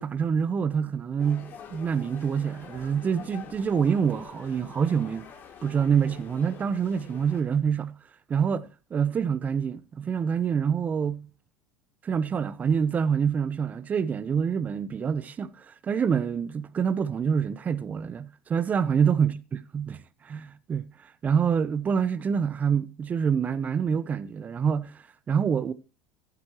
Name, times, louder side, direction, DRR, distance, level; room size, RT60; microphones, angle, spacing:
voice 1, 0.0-5.3 5.6-7.9 8.3-11.3 12.0-25.7, right 7 dB, 30° right, 0.9 m, -26 dB
sound 1, 1.2-7.4, left 7 dB, 45° left, 2.8 m, -46 dB
14.5 x 11.0 x 3.0 m
hypercardioid pair, 80°, 5 cm